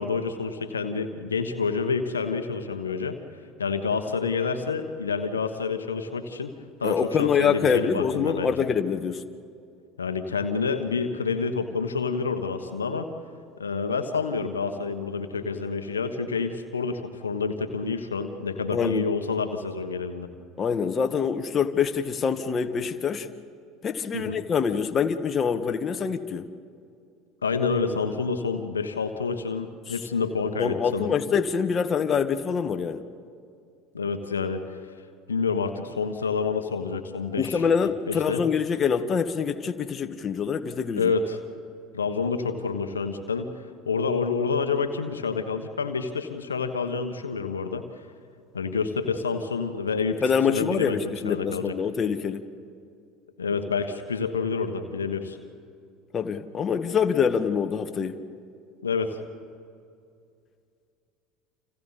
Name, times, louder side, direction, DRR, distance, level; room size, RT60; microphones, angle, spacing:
voice 1, 0.0-3.2 3.6-6.5 6.8-8.5 10.0-13.0 13.6-20.3 24.1-24.4 27.4-31.1 33.9-34.8 35.3-37.6 38.1-38.4 41.0-41.4 41.9-47.8 48.5-51.7 53.4-55.4 58.8-59.2, left 5 dB, 90° left, 7 dB, 1.3 m, -28 dB
voice 2, 6.8-9.2 18.7-19.1 20.6-23.3 23.8-26.4 29.9-30.0 30.6-33.0 37.4-41.1 50.2-52.4 56.1-58.2, left 6 dB, 35° left, 7 dB, 1.4 m, -25 dB
30.0 x 27.0 x 4.2 m, 2.4 s
hypercardioid pair, 75°, 0 cm